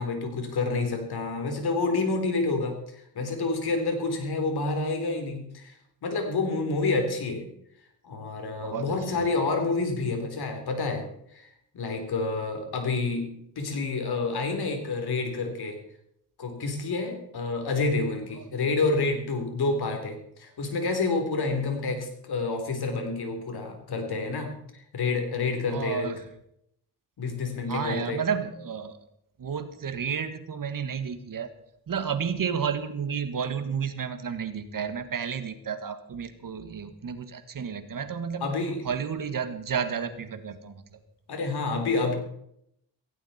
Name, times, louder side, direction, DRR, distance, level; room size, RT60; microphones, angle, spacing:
voice 1, 0.0-5.7 6.0-7.4 8.0-11.0 11.3-11.5 11.7-13.3 13.6-15.8 16.4-26.1 27.2-28.2 38.4-38.8 41.3-42.1, left 3 dB, 70° left, 5 dB, 3.8 m, -28 dB
voice 2, 8.6-8.9 18.3-18.4 25.7-26.2 27.7-29.0 29.4-31.5 31.9-38.6 38.8-40.8, right 7 dB, 55° right, 9 dB, 1.9 m, -31 dB
17.5 x 15.5 x 4.4 m, 0.74 s
cardioid pair, 90°, 40 cm